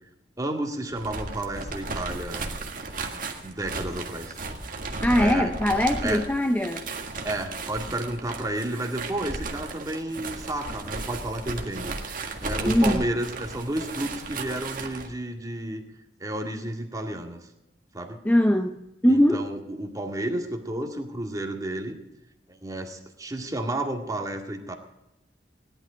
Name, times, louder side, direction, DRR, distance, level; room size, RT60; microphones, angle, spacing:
voice 1, 0.4-2.5 3.4-4.4 5.2-5.5 6.0-6.2 7.2-15.8 16.2-17.4 17.9-18.2 19.1-22.0 22.5-24.7, right 1 dB, 20° right, 3 dB, 2.0 m, -31 dB
sound 1, 0.9-15.1, right 3 dB, 50° right, 1.8 m, -35 dB
voice 2, 5.0-6.8 12.7-13.0 18.2-19.5, equal, 10° left, 6 dB, 0.6 m, -21 dB
17.5 x 11.5 x 5.1 m, 0.90 s
head